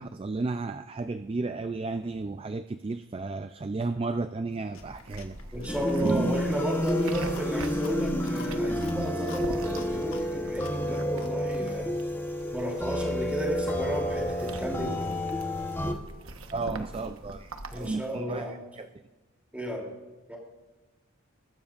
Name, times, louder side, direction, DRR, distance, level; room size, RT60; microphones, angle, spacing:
voice 1, 0.0-5.4 6.0-6.3 16.5-18.9, right 3 dB, 25° right, 10 dB, 0.3 m, -33 dB
Chewing mastication, 4.7-11.9, left 4 dB, 70° left, 1.7 m, -50 dB
sound 1, 4.8-17.9, right 2 dB, 70° right, 1.1 m, -44 dB
voice 2, 5.5-12.0 12.5-15.1 17.7-18.5 19.5-19.9 20.3-20.4, equal, 5° right, -1 dB, 2.9 m, -33 dB
sound 2, 5.7-15.9, equal, 10° left, 0.9 m, -30 dB
21.5 x 12.5 x 2.5 m, 1.2 s
head